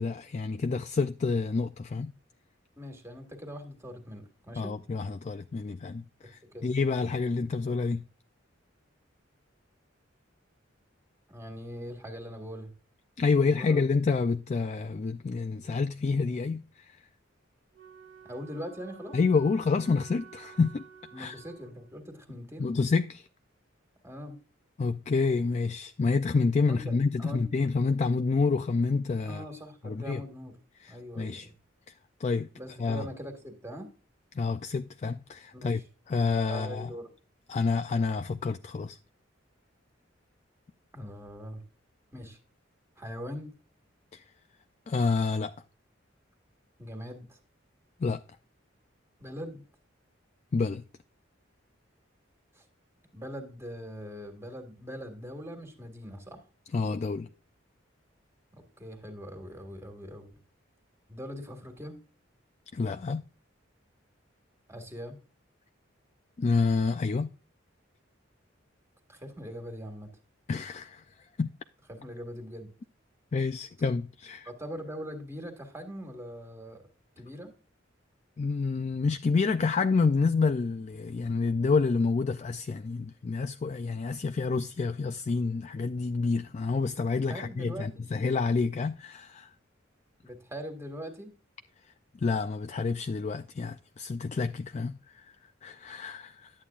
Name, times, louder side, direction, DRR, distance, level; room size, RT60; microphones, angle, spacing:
voice 1, 0.0-2.1 4.6-8.0 13.2-17.0 19.1-20.9 21.2-21.4 22.6-23.3 24.8-29.4 29.8-30.2 30.8-31.5 32.2-32.5 32.8-33.1 34.3-35.8 36.1-36.9 37.5-39.0 44.1-44.2 44.9-45.5 48.0-48.2 50.5-50.8 56.7-57.3 62.7-63.2 66.4-67.3 70.5-71.0 71.4-71.5 73.3-74.5 78.4-89.5 92.2-95.3 95.6-96.5, left 4 dB, 35° left, 0.3 m, -28 dB
voice 2, 2.8-4.8 6.4-6.7 11.3-12.7 13.4-13.8 18.2-19.2 21.1-22.7 24.0-24.4 26.7-27.4 29.3-30.5 30.9-31.5 32.5-33.9 35.5-35.8 36.5-37.1 40.9-41.6 42.1-42.4 43.0-43.5 46.8-47.4 49.2-49.6 52.5-52.6 53.1-56.4 58.5-60.3 61.1-62.0 64.7-65.2 69.1-70.1 71.9-72.7 74.4-76.8 77.2-77.5 87.1-88.1 90.2-91.3, equal, 15° right, 1.8 m, -42 dB
Wind instrument woodwind instrument, 17.7-22.1, right 7 dB, 75° right, 1.6 m, -52 dB
11.0 x 8.4 x 2.4 m
head